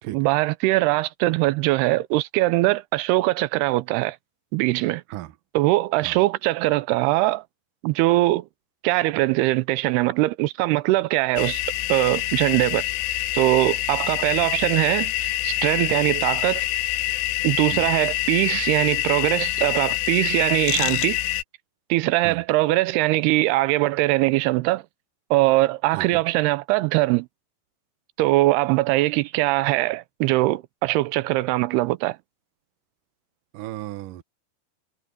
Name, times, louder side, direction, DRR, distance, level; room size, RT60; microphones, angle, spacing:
voice 1, 0.1-4.2 4.5-5.0 5.5-7.4 7.8-8.5 8.8-11.6 11.9-12.8 13.3-16.6 17.4-21.2 21.9-24.8 25.3-27.3 28.2-32.2, right 18 dB, 90° right, 2.7 m, -21 dB
sound 1, 11.4-21.4, left 15 dB, 80° left, 2.8 m, -26 dB
voice 2, 33.5-34.2, right 15 dB, 70° right, 2.3 m, -35 dB
omnidirectional pair, 4.5 m